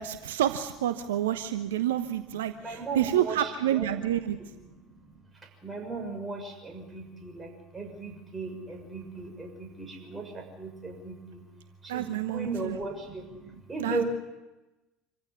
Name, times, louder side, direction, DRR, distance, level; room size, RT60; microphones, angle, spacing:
voice 1, 0.0-4.4 11.9-12.8 13.8-14.0, right 11 dB, 75° right, 10 dB, 0.9 m, -28 dB
voice 2, 2.6-3.5 3.8-4.2 5.6-7.5 7.7-10.2 10.6-11.1 11.9-12.1 12.3-13.2 13.7-14.1, right 3 dB, 20° right, 3 dB, 6.7 m, -36 dB
26.0 x 15.5 x 8.3 m, 1.1 s
figure-of-eight pair, 70°, 0 cm